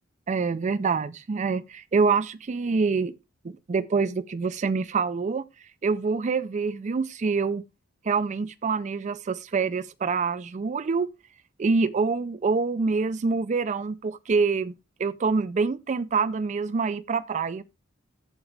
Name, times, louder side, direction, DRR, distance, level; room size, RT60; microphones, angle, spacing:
voice 1, 0.3-3.1 3.4-5.4 5.8-7.6 8.0-11.1 11.6-14.7 15.0-17.6, right 4 dB, 35° right, 0.4 m, -26 dB
14.5 x 4.9 x 3.2 m
head